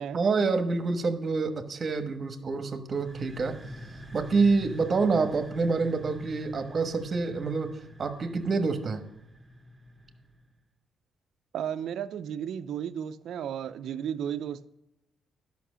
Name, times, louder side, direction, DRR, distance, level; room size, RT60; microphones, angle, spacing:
voice 1, 0.1-3.6 4.1-9.0, right 4 dB, 40° right, 1.3 m, -27 dB
sound 1, 2.9-10.5, equal, 15° right, 1.7 m, -46 dB
voice 2, 11.5-14.7, right 9 dB, 70° right, 0.5 m, -34 dB
11.0 x 5.9 x 6.2 m
cardioid pair, 90°, 0 cm